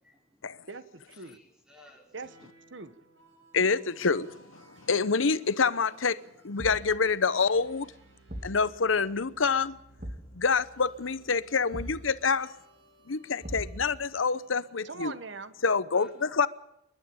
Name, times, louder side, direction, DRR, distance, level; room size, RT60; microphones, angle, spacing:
voice 1, 0.0-0.5 1.1-2.2 3.3-3.4 8.1-8.5 10.1-10.5 12.9-13.3 15.9-16.3, left 1 dB, 5° right, 5.3 m, -59 dB
voice 2, 0.7-1.4 2.1-2.9 14.8-15.5, right 3 dB, 70° right, 1.4 m, -42 dB
sound 1, 2.2-14.7, right 2 dB, 85° right, 6.4 m, -60 dB
voice 3, 3.5-6.2 6.4-7.9 8.4-9.8 10.3-12.5 13.1-15.1 15.6-16.5, left 5 dB, 90° left, 0.9 m, -27 dB
Thump thud, 6.6-7.0 8.3-8.6 10.0-10.3 11.7-12.1 13.4-14.0, equal, 40° right, 3.0 m, -39 dB
28.0 x 12.0 x 8.7 m
head